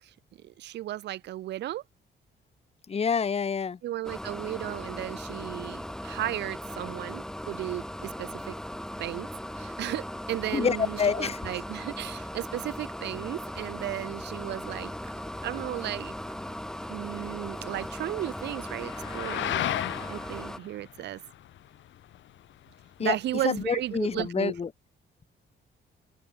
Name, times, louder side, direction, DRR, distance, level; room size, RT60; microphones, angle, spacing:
voice 1, 0.4-1.8 3.8-8.5 9.0-9.3 9.6-14.9 15.4-16.1 16.9-19.6 20.1-21.2 23.0-24.5, right 14 dB, 60° right, 0.4 m, -35 dB
voice 2, 2.9-3.8 10.5-11.4 23.0-23.2 23.4-24.7, left 6 dB, 30° left, 0.9 m, -27 dB
sound 1, 4.0-20.6, equal, 5° left, 1.5 m, -38 dB
sound 2, 14.4-24.3, left 12 dB, 70° left, 1.2 m, -38 dB
cardioid pair, 90°, 20 cm